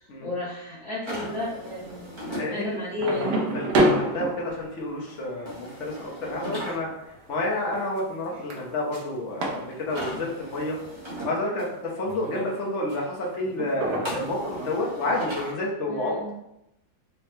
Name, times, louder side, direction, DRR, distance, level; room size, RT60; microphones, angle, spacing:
voice 1, 0.2-2.1 2.5-3.4 15.8-16.3, left 2 dB, 80° left, -9 dB, 2.3 m, -32 dB
sound 1, 1.0-2.5 5.5-6.8 9.9-11.3 14.0-15.5, equal, 30° right, 0.5 m, -37 dB
sound 2, 1.9-2.4 2.9-10.2 10.4-10.6 11.0-11.7 12.0-13.1 13.4-14.7, right 1 dB, 65° right, 1.1 m, -29 dB
voice 2, 2.3-2.8 3.5-6.9 7.3-10.8 11.2-16.3, left 1 dB, 60° left, -3 dB, 0.8 m, -29 dB
4.6 x 2.1 x 3.2 m, 0.86 s
omnidirectional pair, 2.1 m